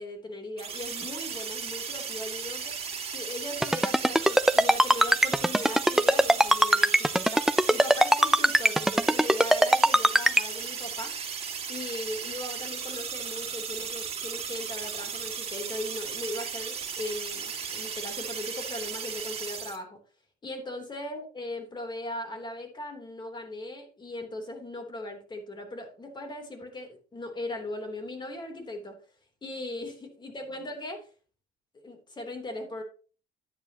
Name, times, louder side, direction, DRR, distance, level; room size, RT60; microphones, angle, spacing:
voice 1, 0.0-2.8 3.1-11.2 11.7-20.0 20.4-29.0 29.4-31.1 31.8-32.8, left 1 dB, 25° left, 5 dB, 3.4 m, -38 dB
sound 1, 0.6-19.8, right 6 dB, 35° right, 2.6 m, -36 dB
Ringtone, 3.6-10.4, right 1 dB, ahead, 0.4 m, -20 dB
11.0 x 9.8 x 3.0 m, 0.36 s
cardioid pair, 110°, 17 cm